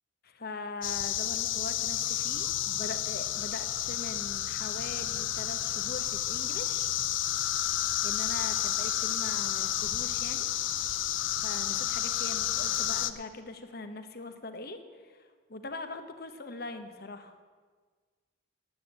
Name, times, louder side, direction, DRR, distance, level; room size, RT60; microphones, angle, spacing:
voice 1, 0.2-6.9 8.0-10.5 11.4-17.3, left 3 dB, 50° left, 8 dB, 1.1 m, -42 dB
sound 1, 0.8-13.1, left 12 dB, 70° left, 0.6 m, -31 dB
9.3 x 9.2 x 8.8 m, 1.5 s
head